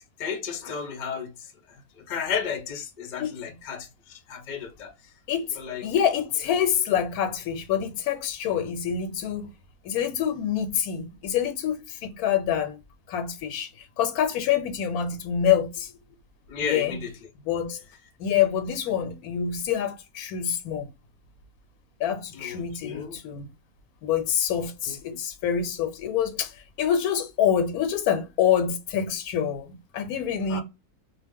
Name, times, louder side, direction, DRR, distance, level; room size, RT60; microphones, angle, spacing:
voice 1, 0.0-1.3 1.7-1.8 2.1-4.9 5.6-5.8 16.5-17.1 22.3-23.2 24.9-25.2 30.5-30.6, left 6 dB, 55° left, 0.5 m, -33 dB
voice 2, 3.2-3.6 5.3-9.5 9.8-12.8 13.1-13.7 14.0-15.9 16.6-17.0 17.4-17.8 18.2-20.9 22.0-23.5 24.0-26.5 26.8-30.6, left 9 dB, 90° left, 1.1 m, -26 dB
2.4 x 2.1 x 3.5 m
omnidirectional pair, 1.5 m